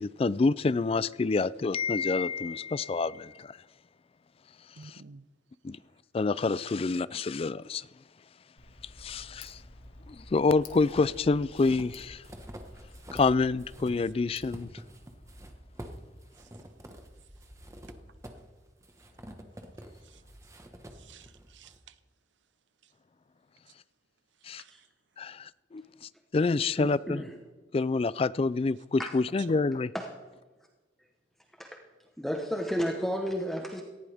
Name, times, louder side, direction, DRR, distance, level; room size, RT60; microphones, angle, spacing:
voice 1, 0.0-3.6 4.8-5.0 5.6-5.8 6.1-7.9 9.0-9.6 10.1-12.2 13.1-14.7 24.4-24.6 25.2-27.2 27.7-29.9, left 3 dB, 30° left, 19 dB, 0.3 m, -27 dB
voice 2, 4.8-5.2 16.4-16.5 20.0-20.2 20.9-21.9 24.4-24.9, right 4 dB, 80° right, 13 dB, 0.8 m, -53 dB
Tick, 8.6-14.6, left 2 dB, 85° left, 1.8 m, -51 dB
sound 1, 10.3-13.3 13.6-21.8, equal, 15° right, 1.3 m, -48 dB
voice 3, 26.8-27.3 29.0-29.1 29.9-30.1 31.6-31.8 32.2-33.8, equal, ahead, 2 dB, 1.0 m, -32 dB
18.5 x 15.0 x 3.5 m, 1.3 s
head